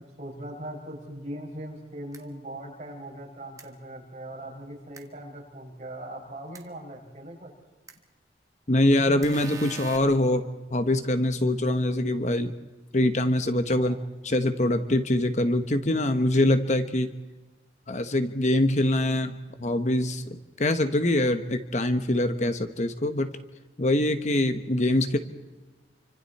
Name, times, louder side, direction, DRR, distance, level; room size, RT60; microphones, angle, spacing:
voice 1, 0.2-7.5 13.7-14.0 25.1-25.2, right 1 dB, 40° right, 0 dB, 5.8 m, -40 dB
sound 1, 2.1-2.2 3.6-3.7 4.9-5.0 6.5-6.6 7.9-8.0 9.2-10.0, right 4 dB, 20° right, 1.8 m, -41 dB
voice 2, 8.7-10.4 10.7-12.5 12.9-14.0 14.2-17.1 17.9-23.4 23.8-25.2, left 1 dB, 40° left, 9 dB, 1.1 m, -24 dB
29.0 x 25.5 x 4.3 m, 1.2 s
head